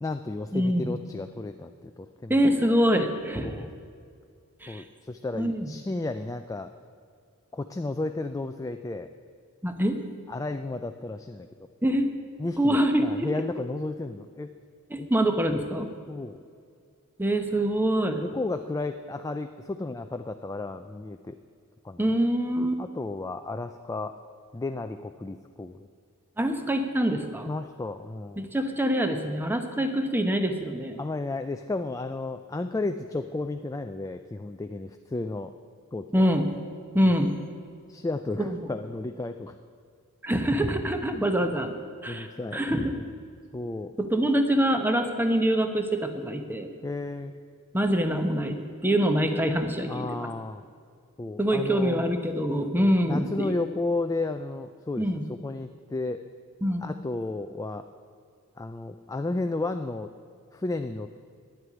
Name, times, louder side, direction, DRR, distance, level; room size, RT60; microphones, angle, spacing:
voice 1, 0.0-2.4 3.4-3.7 4.7-6.7 7.5-9.1 10.3-11.5 12.4-14.5 15.0-15.1 16.1-16.4 18.2-21.4 21.8-22.1 22.8-24.2 24.5-25.9 27.5-28.5 31.0-35.5 35.9-36.2 37.0-37.2 37.9-39.5 41.1-41.3 42.1-43.1 43.5-43.9 46.8-47.3 49.9-50.6 51.2-52.1 52.8-56.2 56.8-57.8 58.6-60.1 60.5-61.3, left 2 dB, 15° left, 7 dB, 0.3 m, -33 dB
voice 2, 0.5-0.9 2.3-3.6 4.6-4.8 5.3-5.7 9.6-10.0 11.8-12.1 12.6-13.3 14.9-15.9 17.2-18.2 22.0-22.8 26.4-27.5 28.4-31.0 36.1-36.5 36.9-37.3 38.4-38.6 40.2-41.7 42.0-42.9 44.0-46.7 47.7-50.3 51.4-53.6 55.0-55.2 56.6-56.9, equal, 10° right, 6 dB, 0.9 m, -25 dB
10.0 x 7.9 x 9.7 m, 2.2 s
head